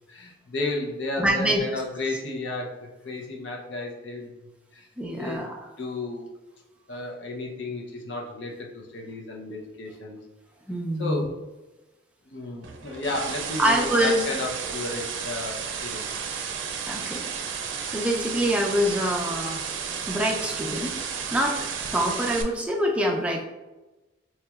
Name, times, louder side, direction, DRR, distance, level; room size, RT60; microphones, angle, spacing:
voice 1, 0.1-4.3 4.7-4.9 5.1-5.5 5.8-6.3 6.9-10.2 11.0-11.4 12.3-16.1, left 2 dB, 70° left, 0 dB, 0.7 m, -33 dB
voice 2, 1.2-1.6 5.0-5.7 10.7-11.3 13.6-14.2 16.9-17.2 17.9-19.6 20.1-20.9 21.3-21.6 21.9-23.4, equal, 5° right, 0 dB, 0.4 m, -25 dB
sound 1, 12.6-22.4, right 6 dB, 80° right, 0.4 m, -33 dB
4.4 x 2.9 x 2.3 m, 1.1 s
head